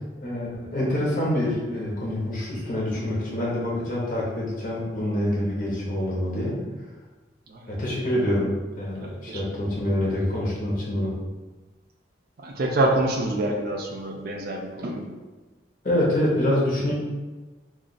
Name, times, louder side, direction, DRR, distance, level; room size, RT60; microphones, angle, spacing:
voice 1, 0.2-6.5 7.7-11.1 15.8-16.9, left 1 dB, 50° left, -5 dB, 0.8 m, -26 dB
voice 2, 9.0-9.7 12.4-15.0, right 1 dB, 55° right, 2 dB, 0.4 m, -27 dB
2.4 x 2.4 x 3.8 m, 1.2 s
head